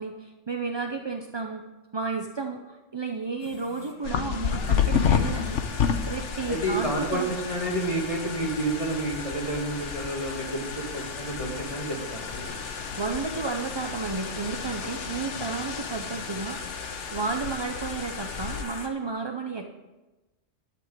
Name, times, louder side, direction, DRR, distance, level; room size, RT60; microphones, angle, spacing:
voice 1, 0.0-1.6 1.9-5.6 6.1-7.3 12.5-16.6 17.1-19.7, right 4 dB, 35° right, 4 dB, 0.4 m, -32 dB
sound 1, 3.4-18.9, left 4 dB, 55° left, 1.4 m, -40 dB
sound 2, 4.0-18.6, left 7 dB, 70° left, 1.1 m, -31 dB
voice 2, 6.4-12.6, right 1 dB, 25° left, -1 dB, 2.1 m, -30 dB
11.0 x 6.0 x 8.5 m, 1.1 s
omnidirectional pair, 1.3 m